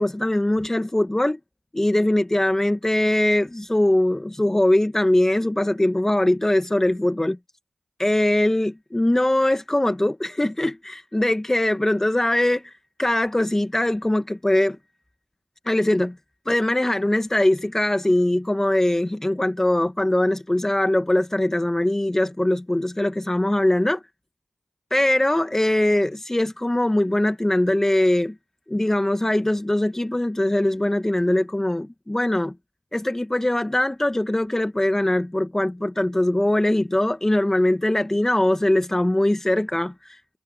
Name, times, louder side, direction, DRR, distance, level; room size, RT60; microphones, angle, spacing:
voice 1, 0.0-1.4 1.7-7.4 8.0-12.7 13.0-14.8 15.6-16.2 16.5-24.0 24.9-28.3 28.7-32.5 32.9-40.4, left 1 dB, 20° left, 1.3 m, -21 dB
cardioid pair, 45°, 2 cm